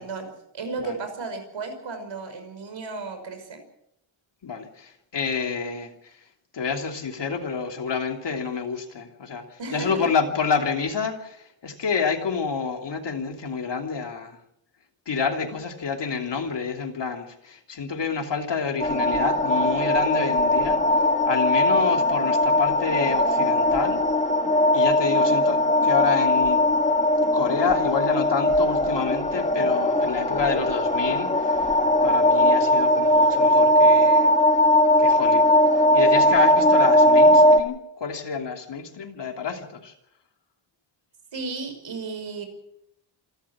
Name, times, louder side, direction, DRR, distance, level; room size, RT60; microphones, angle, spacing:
voice 1, 0.0-3.6 9.6-9.9 41.3-42.5, right 4 dB, 65° right, 7 dB, 5.8 m, -34 dB
voice 2, 4.4-6.2 6.5-14.4 15.1-20.8 21.2-24.0 24.7-26.6 27.3-31.7 32.0-34.3 35.0-35.6 35.9-39.9, left 5 dB, 60° left, 3 dB, 3.0 m, -28 dB
sound 1, 18.8-37.6, left 1 dB, 15° left, 1.7 m, -19 dB
28.0 x 13.0 x 7.4 m, 0.77 s
wide cardioid pair, 180°, 48 cm